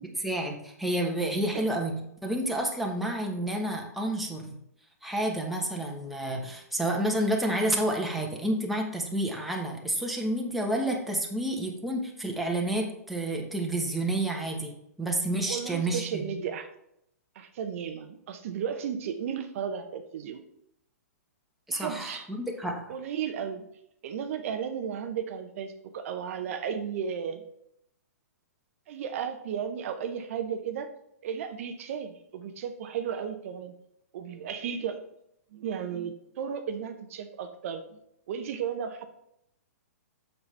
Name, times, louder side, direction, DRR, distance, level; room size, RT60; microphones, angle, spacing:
voice 1, 0.0-1.9 2.2-4.6 5.0-14.7 15.0-16.3 21.7-22.8, right 1 dB, ahead, 0 dB, 1.2 m, -29 dB
voice 2, 1.3-1.8 15.5-16.7 17.3-20.4 21.7-22.2 22.9-23.7 24.0-27.4 28.9-30.9 31.2-33.7 34.1-35.0 35.5-38.0 38.3-39.1, right 7 dB, 55° right, 7 dB, 0.7 m, -34 dB
7.0 x 6.6 x 3.3 m, 0.77 s
hypercardioid pair, 125°, 9 cm